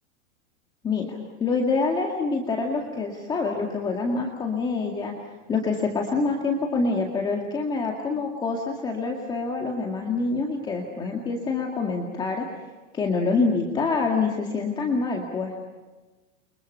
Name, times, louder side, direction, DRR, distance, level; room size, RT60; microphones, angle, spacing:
voice 1, 0.8-5.1 5.5-12.5 12.9-15.5, left 4 dB, 10° left, 0 dB, 2.0 m, -26 dB
29.5 x 25.0 x 5.6 m, 1.3 s
supercardioid pair, 165°, 38 cm